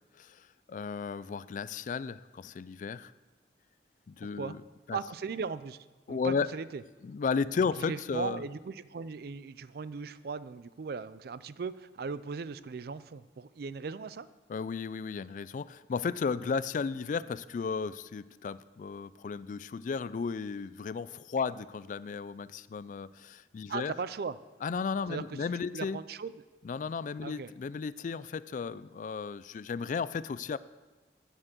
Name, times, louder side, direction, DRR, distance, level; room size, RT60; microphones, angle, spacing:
voice 1, 0.1-3.1 4.1-4.6 4.9-5.0 6.1-6.5 7.0-8.4 14.5-23.9 24.6-26.0 26.6-30.6, left 5 dB, 45° left, 17 dB, 0.3 m, -34 dB
voice 2, 4.2-4.6 4.9-6.8 7.9-14.3 23.7-24.4 25.1-25.5 25.7-26.3 27.2-27.5, right 5 dB, 60° right, 16 dB, 0.4 m, -38 dB
9.1 x 7.2 x 8.0 m, 1.2 s
head